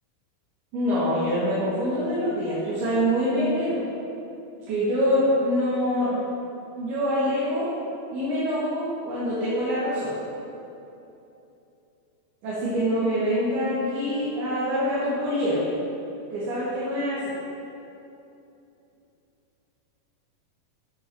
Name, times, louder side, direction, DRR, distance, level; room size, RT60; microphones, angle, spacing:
voice 1, 0.7-3.8 4.7-6.3 6.8-7.7 8.1-10.1 12.4-15.7 16.3-17.2, equal, 85° right, -11 dB, 4.2 m, -25 dB
14.0 x 8.6 x 3.1 m, 2.8 s
omnidirectional pair, 4.3 m